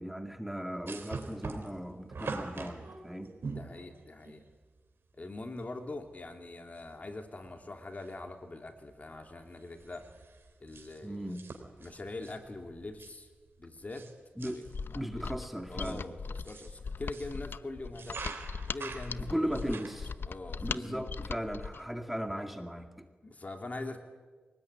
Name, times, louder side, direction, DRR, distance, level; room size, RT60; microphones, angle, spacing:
voice 1, 0.0-3.3 11.0-11.5 14.4-14.6 14.9-16.0 19.3-20.1 20.6-23.1, equal, 5° right, 5 dB, 2.1 m, -37 dB
sound 1, 0.9-4.4 5.6-5.7 6.0-6.1 6.8-7.2 7.5-8.3 8.6-8.9 9.2-14.1 14.4-14.8 15.5-17.4 17.8-20.0, right 4 dB, 75° right, 3.6 m, -44 dB
voice 2, 3.5-4.4 5.2-10.1 10.6-11.4 11.8-13.3 13.6-14.1 14.4-15.2 15.7-18.4 18.7-19.8 20.3-21.0 23.2-24.0, left 2 dB, 40° left, 4 dB, 3.1 m, -43 dB
Mechanisms, 14.7-21.9, left 5 dB, 70° left, 0.7 m, -39 dB
25.0 x 19.5 x 9.8 m, 1.4 s
wide cardioid pair, 85°, 4 cm